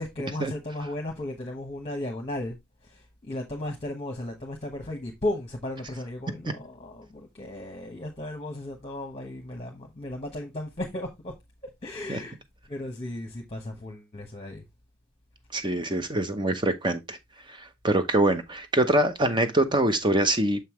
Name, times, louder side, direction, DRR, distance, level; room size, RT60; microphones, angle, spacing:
voice 1, 0.0-2.5 2.8-11.3 11.8-12.4 12.7-14.6, left 1 dB, 30° left, 1.0 m, -35 dB
voice 2, 15.5-17.2 17.5-20.6, right 1 dB, 20° right, 0.7 m, -24 dB
6.8 x 5.4 x 3.0 m
head